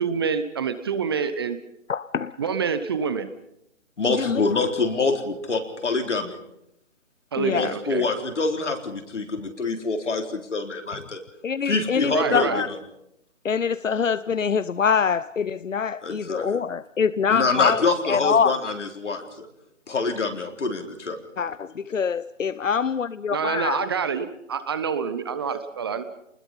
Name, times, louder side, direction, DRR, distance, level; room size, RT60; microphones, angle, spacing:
voice 1, 0.0-1.6 2.4-3.3 7.3-8.1 12.1-12.6 23.3-26.0, right 6 dB, 20° right, 11 dB, 0.7 m, -27 dB
voice 2, 1.9-2.4 4.1-4.4 7.4-7.7 11.4-12.7 13.4-18.5 21.4-23.9, left 6 dB, 90° left, 16 dB, 0.8 m, -24 dB
voice 3, 4.0-6.4 7.5-11.2 11.6-12.8 16.0-16.5 17.3-19.5 19.9-21.2, left 3 dB, 70° left, 4 dB, 4.1 m, -26 dB
26.5 x 20.5 x 5.6 m, 0.80 s
figure-of-eight pair, 150°, 37 cm